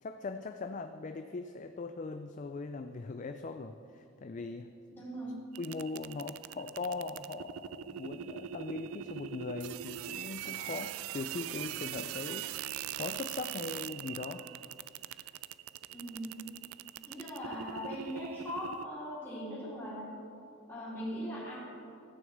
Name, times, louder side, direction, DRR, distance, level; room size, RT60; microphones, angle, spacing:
voice 1, 0.0-4.7 5.6-14.4, left 3 dB, 35° left, 8 dB, 0.4 m, -40 dB
voice 2, 4.9-5.4 15.9-16.3 17.1-20.2 20.7-21.6, equal, 15° left, -13 dB, 2.9 m, -40 dB
sound 1, 5.5-18.8, right 11 dB, 85° right, 0.4 m, -42 dB
14.0 x 6.3 x 7.9 m, 2.6 s
head